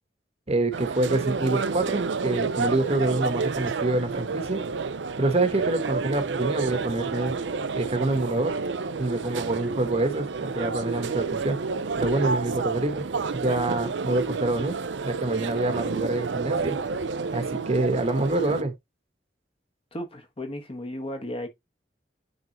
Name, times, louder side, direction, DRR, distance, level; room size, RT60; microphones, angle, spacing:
voice 1, 0.5-4.6 5.2-7.3 7.7-8.5 9.0-11.6 12.0-14.8 15.0-16.8 17.3-18.7, right 2 dB, 35° right, 1.3 m, -26 dB
sound 1, 0.7-18.6, right 4 dB, 80° right, 0.6 m, -30 dB
voice 2, 19.9-21.5, left 1 dB, 35° left, 1.5 m, -34 dB
9.7 x 3.9 x 3.0 m
head